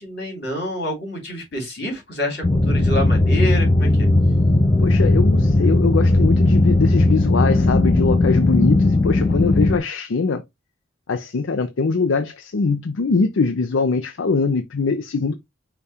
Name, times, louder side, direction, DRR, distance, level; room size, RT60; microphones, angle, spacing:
voice 1, 0.0-4.1, left 1 dB, 50° left, 3.0 m, -27 dB
sound 1, 2.4-9.8, left 2 dB, 20° left, 0.4 m, -17 dB
voice 2, 4.8-10.4 11.1-15.3, left 4 dB, 70° left, 0.5 m, -22 dB
5.1 x 2.3 x 4.1 m
head